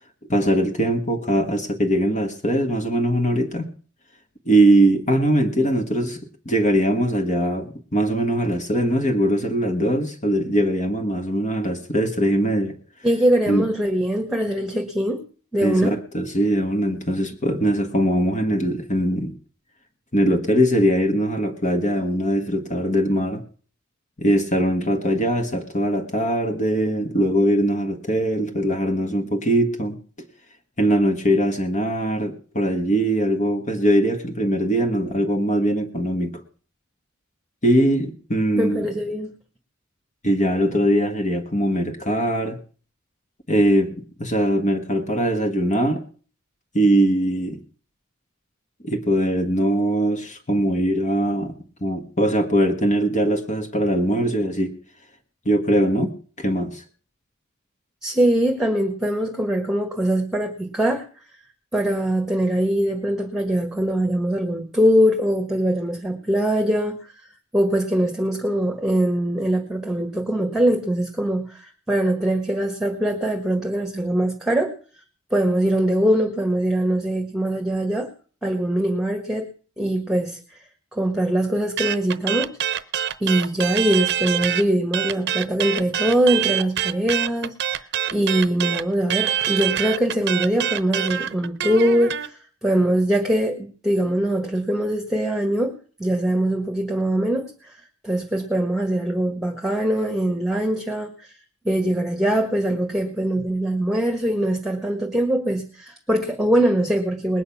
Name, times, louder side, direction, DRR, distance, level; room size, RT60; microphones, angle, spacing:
voice 1, 0.3-3.7 4.4-6.2 6.4-12.7 13.5-13.6 15.6-19.3 20.1-23.4 24.2-30.0 30.8-36.4 37.6-38.9 40.2-42.6 43.5-46.0 46.7-47.6 48.8-54.8 55.4-56.8, right 1 dB, 35° left, 1.6 m, -21 dB
voice 2, 13.0-15.2 15.5-15.9 38.6-39.3 58.0-61.0 61.7-67.0 67.5-74.7 75.3-78.1 78.4-79.5 79.8-80.4 80.9-82.6 83.2-101.3 101.6-107.4, right 1 dB, ahead, 1.6 m, -22 dB
sound 1, 81.8-84.6 84.9-92.3, right 10 dB, 55° right, 0.8 m, -25 dB
20.0 x 9.3 x 5.9 m
head